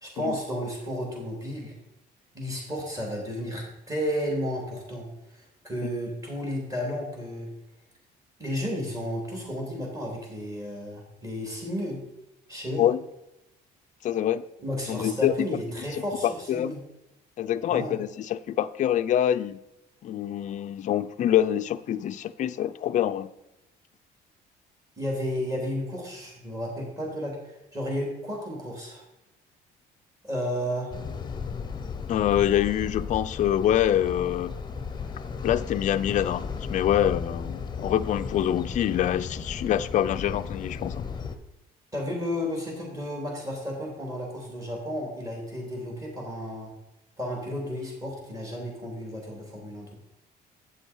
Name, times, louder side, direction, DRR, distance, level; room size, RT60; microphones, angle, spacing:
voice 1, 0.0-1.7 2.3-7.5 8.4-12.0 12.5-12.9 14.6-16.8 17.7-18.0 25.0-29.0 30.2-30.9 41.9-46.7 47.2-50.0, equal, 20° right, -1 dB, 3.5 m, -32 dB
voice 2, 14.0-14.4 14.9-15.3 16.2-16.7 17.4-19.6 20.0-23.3 32.1-34.6 35.4-41.1, left 11 dB, 45° left, 11 dB, 0.4 m, -25 dB
sound 1, 30.9-41.4, left 5 dB, 25° left, 0.8 m, -35 dB
8.4 x 7.1 x 4.6 m, 0.92 s
cardioid pair, 110°, 17 cm